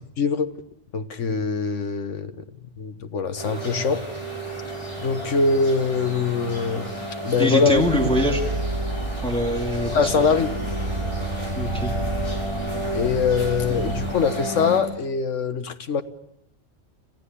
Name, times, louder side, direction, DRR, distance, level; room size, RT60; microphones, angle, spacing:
voice 1, 0.2-0.5 0.9-2.3 2.8-4.0 5.0-7.0 7.2-7.8 9.9-10.5 12.9-16.0, left 5 dB, 85° left, 10 dB, 1.5 m, -23 dB
sound 1, 3.4-14.8, equal, 25° left, 6.4 m, -31 dB
voice 2, 7.4-8.4 9.2-10.1 11.6-11.9, equal, 5° left, 1 dB, 2.3 m, -23 dB
sound 2, 7.7-14.1, right 3 dB, 75° right, 6.2 m, -31 dB
27.5 x 15.0 x 8.4 m, 0.80 s
omnidirectional pair, 1.2 m